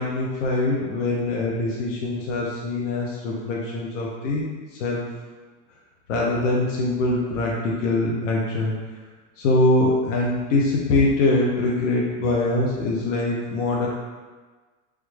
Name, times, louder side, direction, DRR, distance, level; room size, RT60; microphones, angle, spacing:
voice 1, 0.0-4.5 4.8-5.1 6.1-8.7 9.4-13.9, left 2 dB, 75° left, -3 dB, 0.7 m, -23 dB
3.3 x 2.4 x 3.1 m, 1.4 s
supercardioid pair, 165°, 37 cm